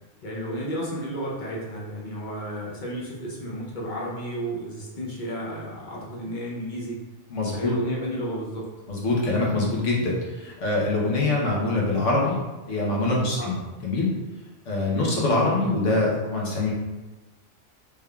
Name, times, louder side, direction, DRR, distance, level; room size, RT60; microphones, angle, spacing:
voice 1, 0.2-7.0 7.5-8.7 11.1-11.3 13.4-13.5 14.9-15.1, equal, 50° left, -4 dB, 0.7 m, -32 dB
voice 2, 7.3-7.7 8.9-12.4 12.7-14.1 14.7-16.7, left 2 dB, 75° left, -4 dB, 1.2 m, -24 dB
3.4 x 3.4 x 2.2 m, 1.1 s
omnidirectional pair, 1.3 m